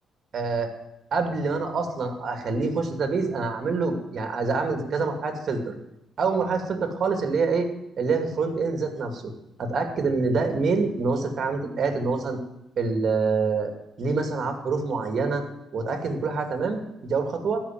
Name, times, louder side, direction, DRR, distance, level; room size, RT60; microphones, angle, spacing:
voice 1, 0.3-0.7 1.1-5.7 6.2-7.7 8.0-9.3 9.6-12.4 12.8-13.7 14.0-15.4 15.7-17.6, right 4 dB, 55° right, 6 dB, 2.4 m, -26 dB
14.0 x 5.8 x 9.3 m, 0.85 s
cardioid pair, 90°, 0 cm